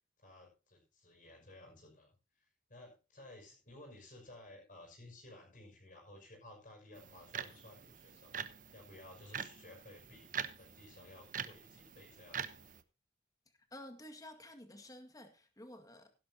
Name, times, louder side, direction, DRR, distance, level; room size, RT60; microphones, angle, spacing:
voice 1, 0.2-8.5 8.7-12.7, left 1 dB, 45° left, 5.9 m, -56 dB
sound 1, 7.0-12.8, right 8 dB, 45° right, 1.0 m, -45 dB
voice 2, 13.5-16.1, left 1 dB, 20° left, 2.0 m, -52 dB
16.5 x 11.5 x 2.8 m
head